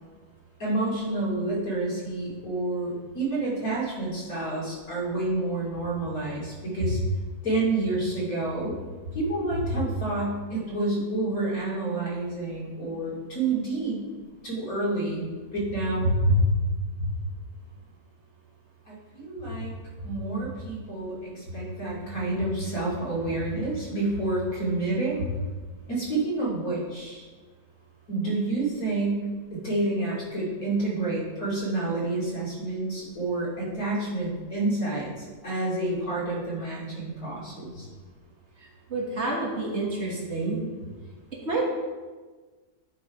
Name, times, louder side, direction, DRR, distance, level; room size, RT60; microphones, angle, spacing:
voice 1, 0.6-7.0 7.4-8.8 9.1-14.0 14.4-15.3 15.5-17.1 18.9-19.7 20.0-25.3 25.9-27.2 28.1-29.2 29.5-37.9, right 2 dB, 60° left, -6 dB, 3.0 m, -28 dB
voice 2, 38.9-40.6 41.4-41.6, right 3 dB, 45° right, -3 dB, 1.5 m, -28 dB
10.5 x 4.2 x 4.8 m, 1.4 s
omnidirectional pair, 1.6 m